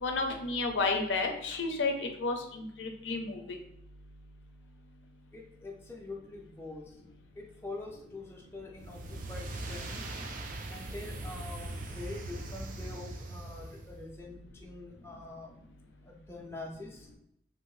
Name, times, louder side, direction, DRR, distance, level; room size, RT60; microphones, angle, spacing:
voice 1, 0.0-3.6, left 3 dB, 80° left, 4 dB, 0.6 m, -32 dB
voice 2, 5.3-10.1 10.7-15.5 16.0-17.1, left 2 dB, 15° left, -1 dB, 0.4 m, -45 dB
sound 1, 8.8-14.1, right 2 dB, 45° right, 0.4 m, -40 dB
2.7 x 2.6 x 3.1 m, 0.78 s
head